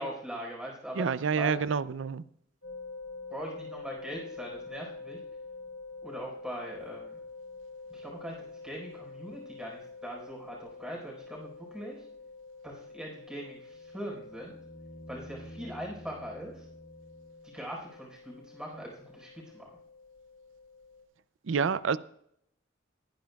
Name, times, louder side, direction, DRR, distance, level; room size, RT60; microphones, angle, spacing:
voice 1, 0.0-1.6 3.3-5.2 6.0-7.2 7.9-8.3 8.6-12.0 12.6-14.6 15.1-16.7 17.4-19.7, equal, 5° right, 4.6 m, -41 dB
voice 2, 0.9-2.2 21.4-22.0, right 6 dB, 75° right, 0.5 m, -28 dB
sound 1, 2.6-21.0, left 3 dB, 85° left, 3.0 m, -47 dB
sound 2, 13.7-17.8 20.2-20.3, equal, 55° left, 2.7 m, -50 dB
22.0 x 10.5 x 2.3 m
head